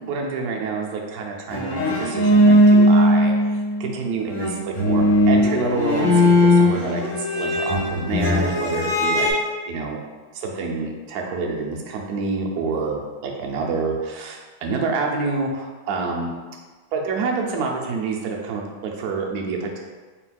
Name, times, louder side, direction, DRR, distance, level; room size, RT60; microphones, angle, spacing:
voice 1, 0.0-9.3 9.7-10.0 10.3-16.3 16.9-19.8, right 4 dB, 70° right, 0 dB, 0.9 m, -27 dB
sound 1, 1.5-4.0 4.3-9.3, left 1 dB, 65° left, 0.5 m, -18 dB
4.4 x 4.1 x 2.2 m, 1.4 s
omnidirectional pair, 2.1 m